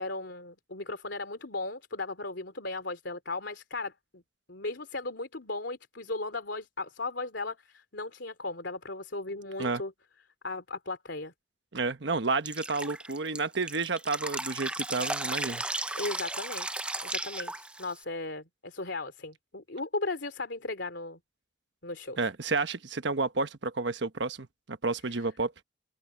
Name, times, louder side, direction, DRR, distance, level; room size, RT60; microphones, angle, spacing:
voice 1, 0.0-4.2 4.5-9.9 10.4-11.3 15.9-21.2 21.8-22.2 25.1-25.2, left 2 dB, 70° left, 2.9 m, -36 dB
voice 2, 11.7-15.6 22.2-25.5, right 3 dB, 70° right, 1.2 m, -31 dB
Drip, 12.5-18.0, right 2 dB, 5° right, 0.4 m, -35 dB
head